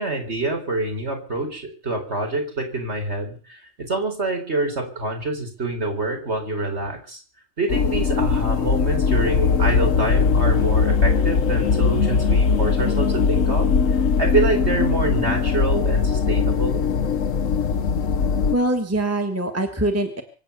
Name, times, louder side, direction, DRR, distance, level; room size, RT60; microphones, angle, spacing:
voice 1, 0.0-7.2 7.6-13.7 14.2-16.8, right 2 dB, 55° right, 4 dB, 4.3 m, -26 dB
sound 1, 7.7-18.6, left 5 dB, 80° left, 1.5 m, -20 dB
voice 2, 18.5-20.2, right 1 dB, 10° right, 5 dB, 1.7 m, -23 dB
24.5 x 8.6 x 6.9 m, 0.41 s
omnidirectional pair, 1.3 m